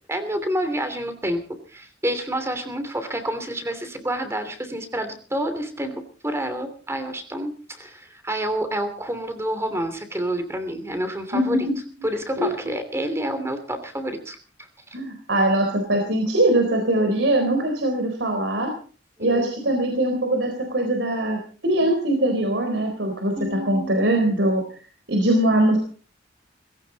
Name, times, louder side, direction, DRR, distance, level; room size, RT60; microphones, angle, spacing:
voice 1, 0.1-11.7 12.0-14.4 19.2-19.5 23.4-24.1, right 1 dB, 15° right, 8 dB, 2.9 m, -28 dB
voice 2, 11.3-11.6 12.4-12.5 14.9-18.7 19.2-24.6 25.1-25.8, right 1 dB, 75° right, 3 dB, 4.1 m, -22 dB
19.0 x 17.0 x 4.1 m, 0.40 s
head